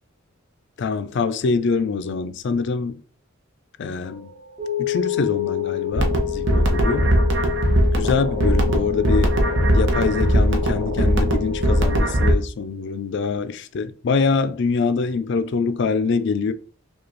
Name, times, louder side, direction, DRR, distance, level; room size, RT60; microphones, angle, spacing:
voice 1, 0.8-3.0 3.8-4.3 4.8-7.1 8.0-9.4 9.7-16.5, left 4 dB, 60° left, 0.4 m, -24 dB
sound 1, 4.0-12.0, left 11 dB, 30° right, 1.2 m, -29 dB
sound 2, 5.9-12.3, right 1 dB, 60° right, 0.8 m, -20 dB
5.0 x 2.3 x 3.1 m
head